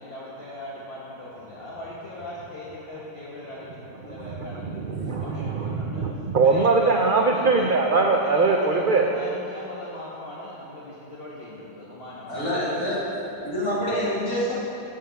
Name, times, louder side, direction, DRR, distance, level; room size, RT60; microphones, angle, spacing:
voice 1, 0.0-4.9 5.2-6.0 6.4-6.9 7.3-7.6 7.9-8.0 8.3-12.4, left 1 dB, 45° left, -7 dB, 1.3 m, -39 dB
voice 2, 4.1-9.1, right 3 dB, 90° right, 2 dB, 0.4 m, -22 dB
voice 3, 12.3-13.0 13.4-14.5, equal, 85° left, -8 dB, 2.9 m, -26 dB
7.5 x 7.4 x 5.6 m, 2.8 s
omnidirectional pair, 1.6 m